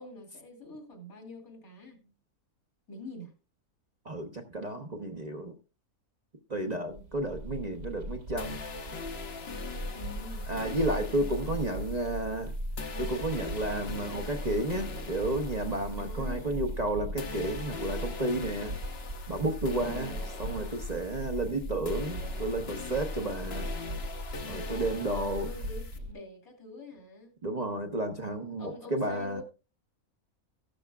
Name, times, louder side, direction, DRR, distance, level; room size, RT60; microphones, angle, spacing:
voice 1, 0.0-2.1 2.9-3.3 6.7-7.0 9.9-10.6 11.1-11.9 16.0-16.7 19.7-20.2 24.5-27.4 28.3-29.4, left 1 dB, 75° left, 3.0 m, -46 dB
voice 2, 4.0-5.5 6.5-8.6 10.5-12.5 13.0-18.7 19.3-20.1 20.4-23.7 24.4-25.5 27.4-29.4, right 1 dB, 30° right, 0.9 m, -32 dB
sound 1, 6.9-26.1, equal, 75° right, 5.6 m, -39 dB
sound 2, 8.4-16.9 17.2-26.0, left 4 dB, 50° left, 1.2 m, -43 dB
14.0 x 12.0 x 2.4 m
omnidirectional pair, 1.5 m